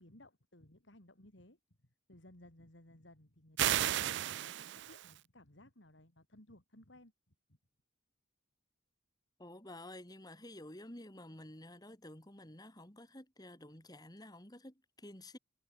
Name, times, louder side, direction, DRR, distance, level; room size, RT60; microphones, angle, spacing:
voice 1, 0.0-7.6, left 1 dB, 60° left, 3.9 m, -60 dB
sound 1, 3.6-5.2, right 12 dB, 55° right, 0.3 m, -33 dB
voice 2, 3.7-4.4 9.4-15.4, left 1 dB, 20° left, 3.2 m, -52 dB
head